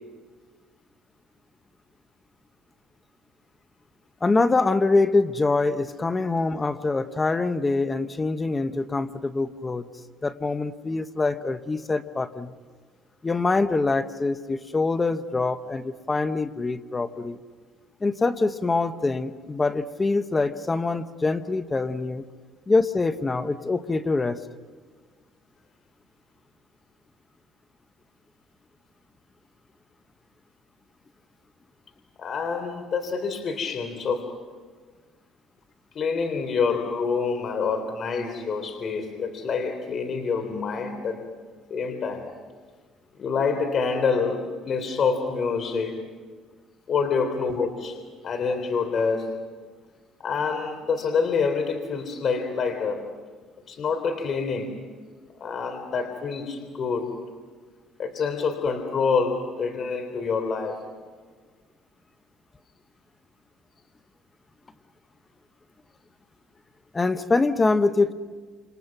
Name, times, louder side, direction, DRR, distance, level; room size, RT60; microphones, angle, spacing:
voice 1, 4.2-9.8 10.2-12.5 13.2-17.4 18.0-22.2 22.7-24.4 66.9-68.1, left 3 dB, 20° left, 10 dB, 1.1 m, -24 dB
voice 2, 32.2-34.3 36.0-41.2 41.7-42.2 43.2-46.0 46.9-48.0 48.2-49.3 50.2-53.0 53.7-54.8 55.4-57.1 58.0-60.8, left 5 dB, 45° left, 7 dB, 3.6 m, -27 dB
29.0 x 28.5 x 6.0 m, 1.5 s
cardioid pair, 105°, 0 cm